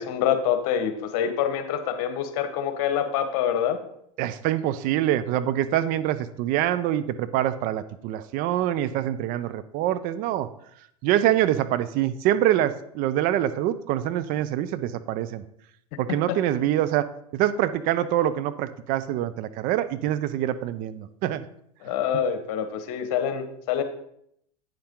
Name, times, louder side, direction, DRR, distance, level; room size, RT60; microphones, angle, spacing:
voice 1, 0.0-3.8 21.8-23.8, left 8 dB, 55° left, 8 dB, 1.3 m, -26 dB
voice 2, 4.2-10.5 11.0-15.4 16.0-17.1 17.3-21.5 22.1-22.2, right 12 dB, 50° right, 13 dB, 0.6 m, -25 dB
9.0 x 7.1 x 3.7 m, 0.71 s
hypercardioid pair, 100°, 19 cm